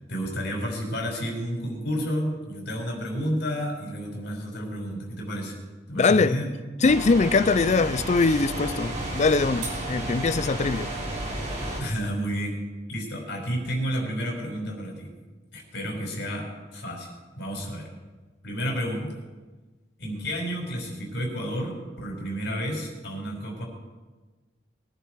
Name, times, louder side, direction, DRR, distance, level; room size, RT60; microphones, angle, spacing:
voice 1, 0.1-5.5 5.9-6.5 11.8-12.6 12.9-15.1 15.5-17.1 17.4-17.9 18.4-19.2 20.0-23.6, equal, 65° left, 5.3 m, -31 dB
voice 2, 5.9-6.4 6.8-10.9, left 4 dB, 40° left, 0.5 m, -22 dB
sound 1, 6.8-11.8, right 1 dB, 40° right, 3.7 m, -32 dB
22.0 x 11.0 x 4.7 m
head